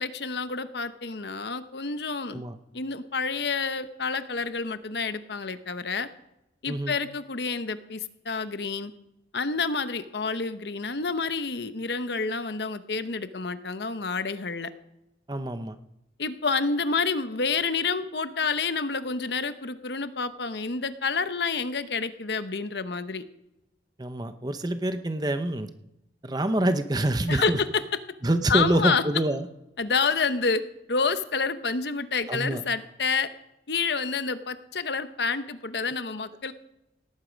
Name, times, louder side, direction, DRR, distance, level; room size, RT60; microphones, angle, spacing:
voice 1, 0.0-2.4 2.7-6.1 6.6-8.9 9.3-14.7 16.2-23.2 27.3-27.7 28.5-29.0 29.8-30.6 30.9-33.3 33.7-36.5, left 4 dB, 70° left, 11 dB, 0.9 m, -28 dB
voice 2, 15.3-15.8 24.0-25.7 26.2-27.6 28.2-29.5 32.3-32.6, right 1 dB, 20° right, 10 dB, 0.8 m, -26 dB
18.0 x 11.5 x 5.2 m, 0.88 s
head